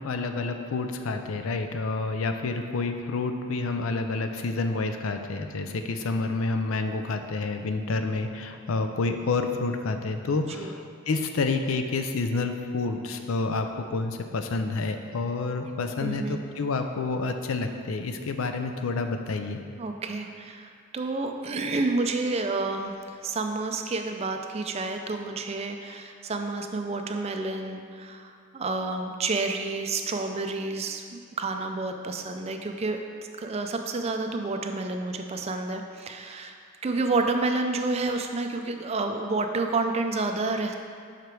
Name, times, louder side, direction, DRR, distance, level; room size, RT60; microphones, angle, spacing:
voice 1, 0.0-10.8 11.1-19.6, left 3 dB, 75° left, 6 dB, 0.5 m, -29 dB
voice 2, 16.0-16.4 19.8-33.0 33.4-36.6 36.8-40.8, right 3 dB, 30° right, 5 dB, 0.4 m, -29 dB
5.8 x 5.0 x 4.6 m, 2.2 s
head